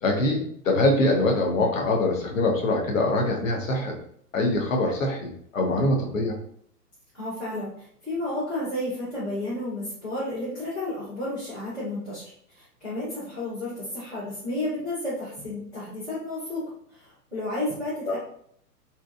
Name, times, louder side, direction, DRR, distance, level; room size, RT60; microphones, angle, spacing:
voice 1, 0.0-4.0 4.3-6.4 18.1-18.2, left 2 dB, 55° left, 1 dB, 0.7 m, -24 dB
voice 2, 7.1-16.6 16.9-18.2, left 1 dB, ahead, -18 dB, 0.4 m, -32 dB
2.7 x 2.2 x 2.3 m, 0.66 s
figure-of-eight pair, 115°, 48 cm